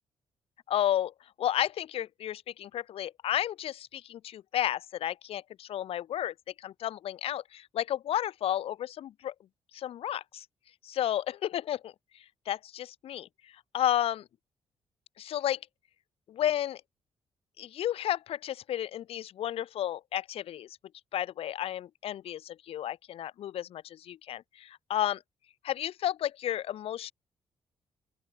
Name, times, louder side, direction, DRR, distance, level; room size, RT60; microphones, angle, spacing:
voice 1, 0.7-1.1 1.4-9.3 9.7-10.4 10.8-11.9 12.5-13.3 13.7-14.2 15.2-15.6 16.3-16.8 17.6-20.7 21.1-25.2 25.6-27.1, left 11 dB, 70° left, 0.6 m, -32 dB
open air
cardioid pair, 105°, 10 cm